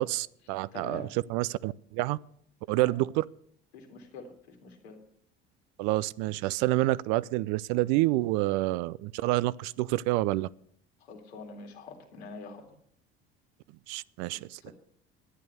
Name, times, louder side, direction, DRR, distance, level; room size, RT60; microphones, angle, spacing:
voice 1, 0.0-2.2 2.7-3.3 5.8-10.5 13.9-14.6, right 18 dB, 60° right, 0.5 m, -28 dB
voice 2, 0.7-1.1 2.7-3.0 3.7-5.0 11.1-12.7 14.6-14.7, left 4 dB, 75° left, 2.3 m, -45 dB
11.5 x 10.5 x 6.7 m
figure-of-eight pair, 60°, 32 cm